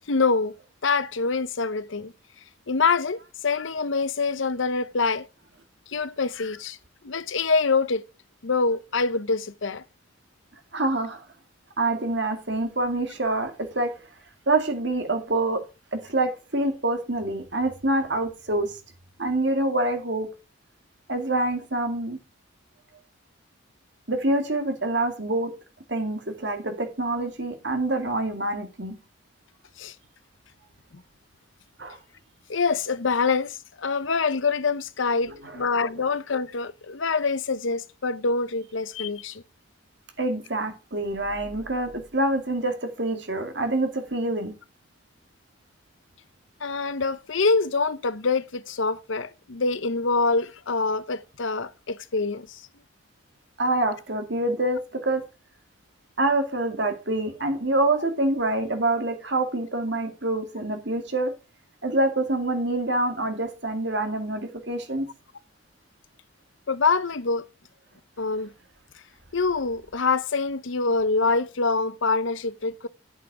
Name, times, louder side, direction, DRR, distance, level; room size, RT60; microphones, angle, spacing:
voice 1, 0.1-0.5 0.8-2.1 2.7-5.3 5.9-6.8 7.0-8.0 8.4-9.8 29.8-29.9 32.5-39.4 46.6-52.6 66.7-67.4 68.2-68.5 69.3-72.9, left 4 dB, 70° left, 0.8 m, -25 dB
voice 2, 10.7-11.2 11.8-14.0 14.5-15.6 15.9-18.8 19.2-20.3 21.1-22.2 24.1-25.6 25.9-29.0 31.8-32.0 35.4-35.6 36.0-36.1 40.2-44.5 53.6-55.2 56.2-61.4 61.8-65.1, right 2 dB, 55° right, 2.3 m, -26 dB
9.0 x 8.5 x 4.8 m
head